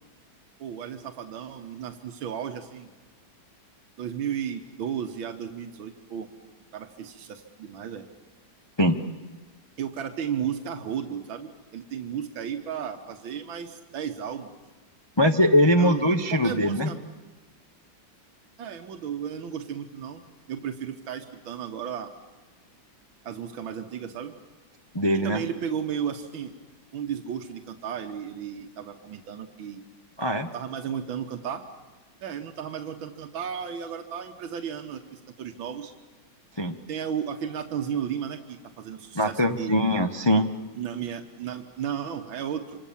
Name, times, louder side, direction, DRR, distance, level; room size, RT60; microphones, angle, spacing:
voice 1, 0.6-2.9 4.0-6.3 6.7-8.1 9.8-14.6 15.8-17.0 18.6-20.2 20.5-22.1 23.2-24.3 25.1-26.5 26.9-29.8 30.5-31.6 32.2-35.9 36.9-39.8 40.8-42.9, right 8 dB, 85° right, 5 dB, 1.9 m, -34 dB
voice 2, 15.2-16.9 24.9-25.4 30.2-30.5 36.6-36.8 39.1-40.5, equal, 25° left, 5 dB, 0.6 m, -21 dB
27.0 x 26.0 x 7.2 m, 1.2 s
omnidirectional pair, 2.1 m